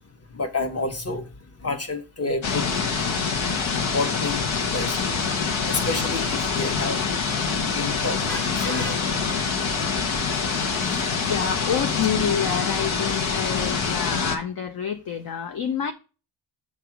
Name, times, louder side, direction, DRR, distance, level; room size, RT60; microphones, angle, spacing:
voice 1, 0.3-1.3 1.6-2.7 3.9-5.1 5.7-7.0 7.7-9.0, left 3 dB, 30° left, 1.3 m, -29 dB
sound 1, 2.4-14.4, left 5 dB, 75° left, 1.4 m, -25 dB
voice 2, 11.2-15.9, left 8 dB, 50° left, 0.7 m, -28 dB
7.2 x 3.3 x 5.9 m
cardioid pair, 95°, 46 cm